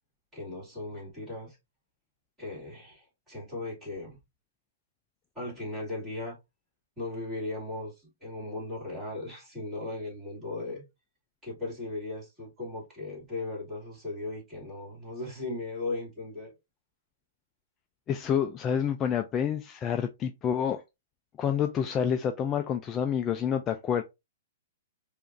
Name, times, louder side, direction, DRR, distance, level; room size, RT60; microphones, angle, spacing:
voice 1, 0.3-1.6 2.4-4.2 5.3-6.4 7.0-7.9 8.2-10.8 11.4-16.5, left 2 dB, 15° right, 2.5 m, -37 dB
voice 2, 18.1-20.8 21.4-24.0, left 8 dB, 20° left, 0.3 m, -28 dB
4.9 x 2.5 x 2.5 m
hypercardioid pair, 155°, 0 cm